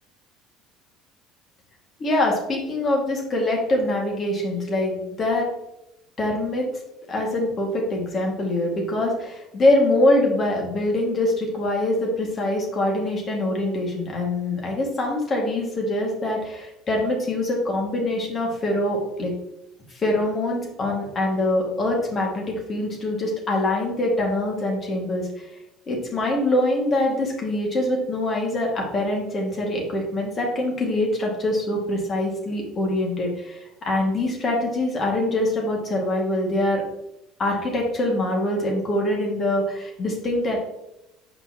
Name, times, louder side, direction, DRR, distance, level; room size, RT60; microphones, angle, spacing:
voice 1, 2.0-5.5 6.2-6.7 7.1-19.3 19.9-22.4 22.7-25.3 25.9-36.8 37.4-40.6, left 1 dB, 40° left, -1 dB, 2.3 m, -24 dB
7.0 x 5.1 x 3.1 m, 0.88 s
hypercardioid pair, 65°, 0 cm